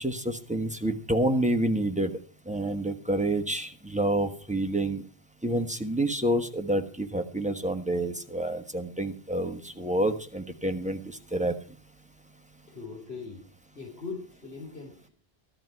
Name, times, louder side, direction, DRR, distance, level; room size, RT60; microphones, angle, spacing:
voice 1, 0.0-2.2 2.5-5.0 5.4-11.5, right 1 dB, 5° right, 6 dB, 1.1 m, -28 dB
voice 2, 12.7-13.4 13.8-15.1, left 4 dB, 80° left, 0 dB, 3.8 m, -40 dB
15.0 x 12.0 x 4.6 m, 0.38 s
omnidirectional pair, 1.1 m